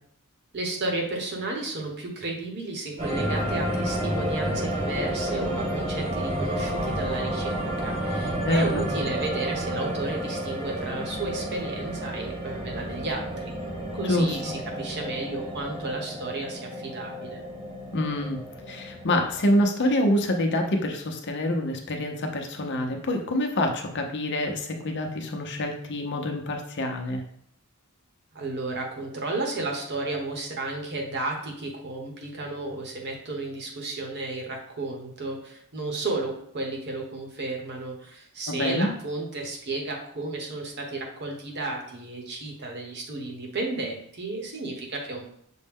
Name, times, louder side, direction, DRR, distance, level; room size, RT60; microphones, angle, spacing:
voice 1, 0.5-13.5 13.9-17.4 28.3-45.2, right 2 dB, 55° right, 1 dB, 1.0 m, -33 dB
sound 1, 3.0-19.6, right 1 dB, 30° right, 1.0 m, -31 dB
voice 2, 8.4-8.8 14.1-14.5 17.9-18.4 18.7-27.2 38.5-38.9, left 1 dB, 55° left, 3 dB, 0.7 m, -26 dB
6.3 x 2.1 x 3.6 m, 0.68 s
head